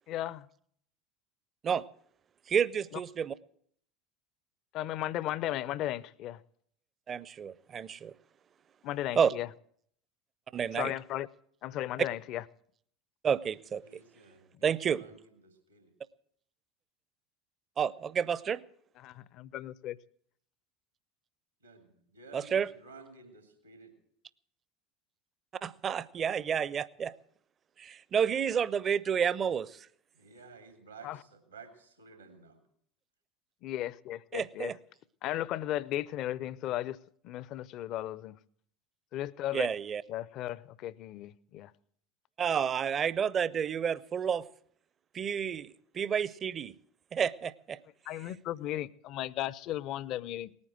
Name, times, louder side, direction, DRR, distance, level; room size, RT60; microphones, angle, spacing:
voice 1, 0.1-0.5 2.9-3.0 4.7-6.4 8.8-9.5 10.7-11.3 11.6-12.4 14.5-14.6 19.0-20.0 31.0-31.2 33.6-34.8 35.2-37.0 37.2-38.4 39.1-39.7 40.1-41.7 48.1-50.6, left 13 dB, 50° left, 0.6 m, -35 dB
voice 2, 2.5-3.3 7.1-8.1 9.2-9.3 10.5-10.9 13.2-13.8 14.6-15.0 17.8-18.6 22.3-22.7 25.6-27.1 27.8-29.9 34.3-34.7 39.5-40.0 42.4-44.4 45.1-46.7 47.1-47.8, right 7 dB, 35° right, 0.6 m, -30 dB
voice 3, 13.8-15.9 21.6-23.9 30.1-32.6, right 4 dB, 85° right, 2.9 m, -54 dB
18.5 x 9.7 x 7.7 m
figure-of-eight pair, 75°, 0 cm